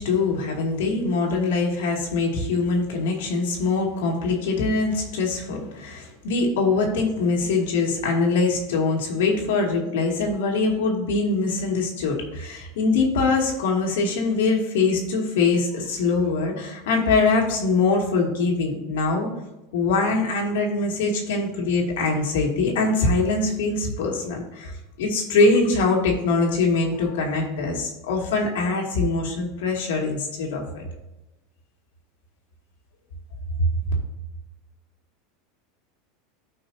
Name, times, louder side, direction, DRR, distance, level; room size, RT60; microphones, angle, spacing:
voice 1, 0.0-19.3 19.7-30.8, left 3 dB, 90° left, 0 dB, 2.5 m, -23 dB
13.5 x 5.6 x 2.8 m, 0.99 s
supercardioid pair, 160°, 0 cm